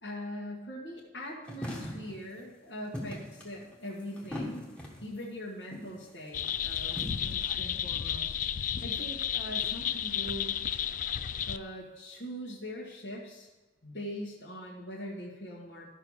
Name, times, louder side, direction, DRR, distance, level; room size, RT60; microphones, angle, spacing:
voice 1, 0.0-4.6 5.0-10.6 11.5-13.5 13.8-15.9, equal, 60° left, -6 dB, 1.6 m, -42 dB
sound 1, 1.5-2.2 2.9-5.1 5.7-6.0 6.5-7.3, left 1 dB, 5° left, 1.3 m, -39 dB
sound 2, 6.3-11.6, left 9 dB, 40° left, 0.3 m, -32 dB
13.5 x 5.6 x 4.7 m, 1.1 s
head